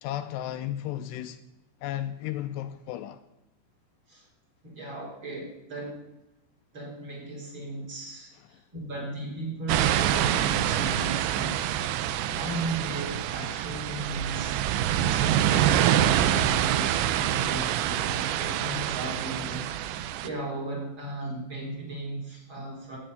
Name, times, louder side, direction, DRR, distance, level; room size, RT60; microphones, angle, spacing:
voice 1, 0.0-1.4 1.8-3.2, left 12 dB, 80° left, 2.7 m, -34 dB
voice 2, 4.6-6.0 6.7-23.0, right 1 dB, 30° right, 4.5 m, -37 dB
sound 1, 9.7-20.3, right 11 dB, 85° right, 2.9 m, -26 dB
11.0 x 8.5 x 9.9 m
omnidirectional pair, 5.0 m